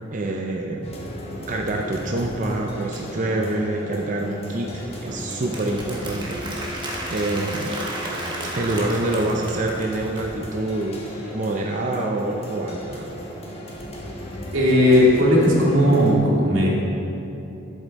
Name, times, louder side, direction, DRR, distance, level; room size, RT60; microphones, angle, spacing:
voice 1, 0.1-1.0 1.5-6.4 7.1-7.7 8.5-13.1, right 2 dB, 40° right, 1 dB, 0.6 m, -26 dB
sound 1, 0.8-16.1, equal, 30° left, 1.3 m, -35 dB
Applause, 4.5-10.3, right 1 dB, 25° right, 1.2 m, -34 dB
voice 2, 14.5-16.7, left 1 dB, 85° right, -4 dB, 2.3 m, -16 dB
12.0 x 7.3 x 4.1 m, 3.0 s
head